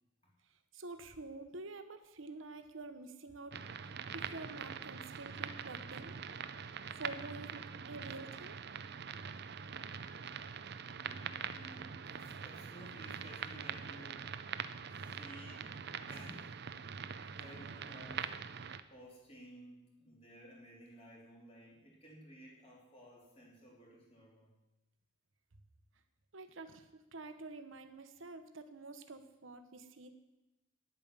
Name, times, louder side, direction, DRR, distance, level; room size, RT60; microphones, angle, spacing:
voice 1, 0.7-3.6 4.1-6.2 7.0-8.6 26.3-30.1, right 3 dB, 75° right, 8 dB, 1.1 m, -48 dB
sound 1, 3.5-18.8, right 7 dB, 55° right, 0.5 m, -44 dB
voice 2, 10.9-14.3 14.9-16.5 17.4-18.3 18.9-24.5, equal, 30° left, -3 dB, 3.4 m, -55 dB
10.0 x 8.8 x 7.2 m, 1.0 s
head